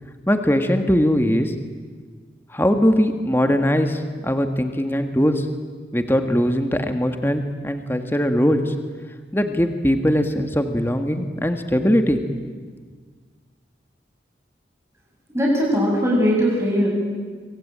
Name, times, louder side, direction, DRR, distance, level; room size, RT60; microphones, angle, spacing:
voice 1, 0.3-1.5 2.5-5.4 5.9-8.7 9.3-12.2, equal, 10° left, 6 dB, 1.7 m, -20 dB
voice 2, 15.3-16.9, equal, 15° right, -2 dB, 7.0 m, -19 dB
26.5 x 24.5 x 8.9 m, 1.5 s
head